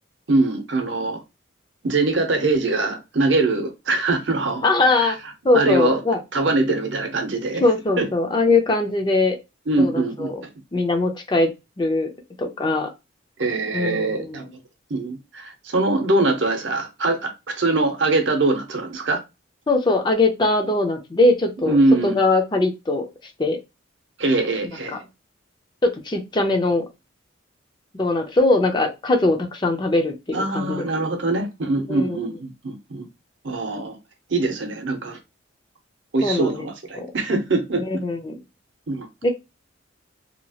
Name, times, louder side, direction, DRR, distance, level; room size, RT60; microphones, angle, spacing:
voice 1, 0.3-1.2 1.8-5.1 5.5-6.0 6.3-7.6 8.0-8.1 9.7-10.3 13.4-14.5 14.9-19.2 21.6-22.2 24.2-25.0 30.3-33.1 33.4-34.0 34.3-35.2 36.1-37.8 38.9-39.1, right 2 dB, 65° right, 0.7 m, -22 dB
voice 2, 4.6-5.2 5.4-6.2 7.6-9.4 9.8-10.4 10.7-11.5 11.8-12.1 12.4-12.9 13.7-14.5 19.7-21.8 22.0-23.1 23.4-23.6 24.9-25.0 25.8-26.8 27.9-31.1 31.9-32.2 36.2-36.7 36.9-37.1 37.7-38.4 39.2-39.4, left 2 dB, 20° left, 0.4 m, -21 dB
2.8 x 2.3 x 2.7 m
head